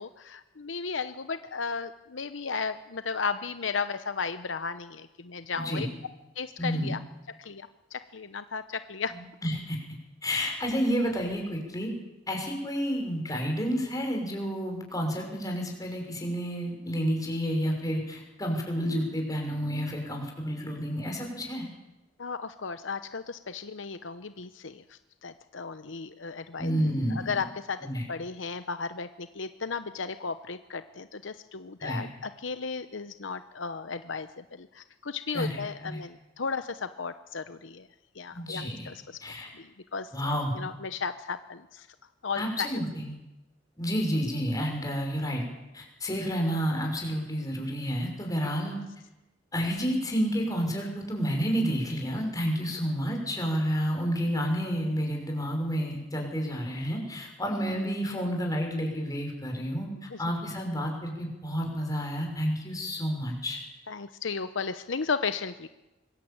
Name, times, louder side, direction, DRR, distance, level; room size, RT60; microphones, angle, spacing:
voice 1, 0.0-5.9 6.4-7.0 7.4-9.1 22.2-24.8 25.2-26.7 27.1-27.8 28.1-37.8 38.2-39.2 39.5-40.1 40.6-41.9 42.2-42.8 63.9-65.7, left 5 dB, 75° left, 11 dB, 0.9 m, -35 dB
voice 2, 5.5-5.9 6.6-7.0 9.1-9.8 10.2-11.9 12.3-21.7 26.6-27.4 27.8-28.1 31.8-32.0 35.3-36.0 38.3-38.9 39.2-39.5 40.1-40.5 42.3-43.2 43.8-45.4 45.7-48.8 49.5-63.6, equal, 20° left, 1 dB, 6.2 m, -30 dB
25.0 x 21.5 x 8.8 m, 1.0 s
head